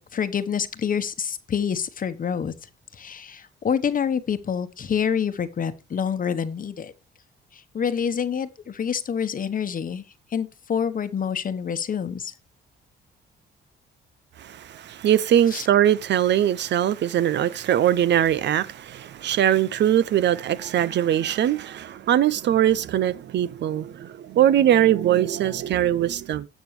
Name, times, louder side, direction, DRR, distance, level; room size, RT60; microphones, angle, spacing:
voice 1, 0.0-2.5 2.9-6.9 7.5-10.0 10.3-12.3 15.5-15.7, left 7 dB, 45° left, 1.1 m, -27 dB
voice 2, 14.4-26.5, right 11 dB, 60° right, 0.6 m, -21 dB
18.5 x 6.3 x 3.2 m
cardioid pair, 90°, 20 cm